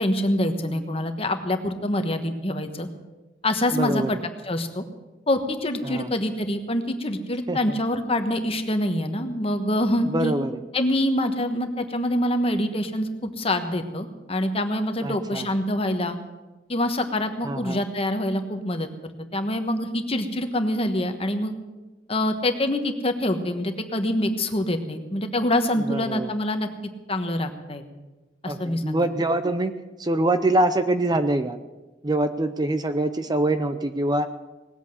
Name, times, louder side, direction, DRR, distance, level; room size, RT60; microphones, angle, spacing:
voice 1, 0.0-2.9 3.4-4.8 5.3-10.3 10.7-16.2 16.7-18.9 19.3-21.5 22.1-26.7 27.1-27.8 28.4-29.1, left 1 dB, 30° left, 7 dB, 1.3 m, -25 dB
voice 2, 3.7-4.2 5.8-6.1 7.5-7.6 10.1-10.5 15.0-15.5 17.4-17.8 25.9-26.3 28.4-29.7 30.0-31.6 32.0-34.3, right 1 dB, 20° right, 10 dB, 0.6 m, -24 dB
19.0 x 8.2 x 8.0 m, 1.1 s
head